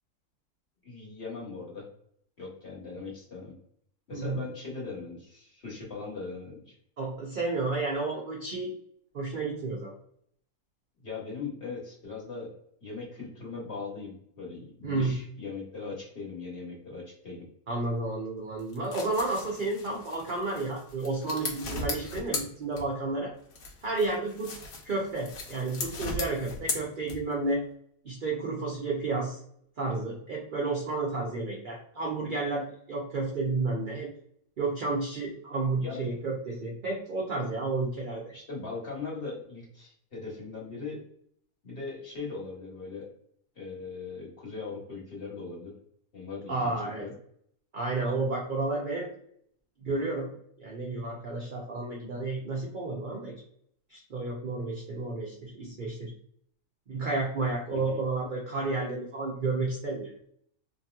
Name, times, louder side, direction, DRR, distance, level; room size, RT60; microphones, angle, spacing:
voice 1, 0.8-1.9 2.4-3.5 4.1-6.7 11.0-12.5 12.8-17.4 35.8-36.2 38.3-41.0 41.6-43.1 43.6-45.7 46.1-47.1 57.7-58.0, left 4 dB, 40° left, -4 dB, 1.2 m, -39 dB
voice 2, 7.0-8.7 9.1-9.9 14.8-15.2 17.7-23.3 23.8-24.5 24.8-27.6 28.0-29.4 29.8-34.1 34.6-38.3 46.5-47.0 47.7-49.1 49.8-50.3 50.6-53.3 53.9-56.1 56.9-60.1, right 3 dB, 75° right, -2 dB, 0.4 m, -31 dB
sound 1, 18.6-23.2 23.5-27.5, left 3 dB, 70° left, 1.2 m, -37 dB
2.9 x 2.7 x 2.3 m, 0.66 s
omnidirectional pair, 1.7 m